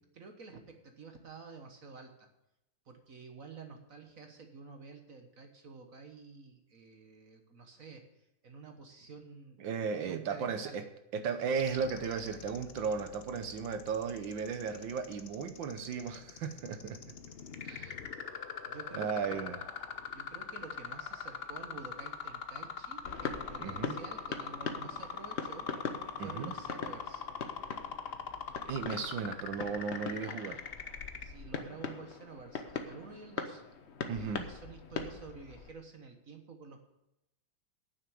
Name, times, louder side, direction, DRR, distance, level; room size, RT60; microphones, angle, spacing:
voice 1, 0.1-2.3 2.9-8.0 8.4-9.6 10.0-10.8 18.7-19.4 20.1-25.7 26.2-27.3 31.2-33.6 34.1-36.8, right 4 dB, 50° right, 5 dB, 1.4 m, -50 dB
voice 2, 9.6-10.8 11.1-17.0 17.6-17.9 18.9-19.6 23.6-23.9 26.2-26.6 28.7-30.6 34.1-34.5, right 6 dB, 70° right, 8 dB, 1.5 m, -35 dB
sound 1, 11.6-31.2, left 7 dB, 75° left, 0.5 m, -42 dB
sound 2, 23.0-35.7, left 5 dB, 50° left, 0.9 m, -42 dB
9.4 x 7.2 x 8.3 m, 0.87 s
omnidirectional pair, 2.2 m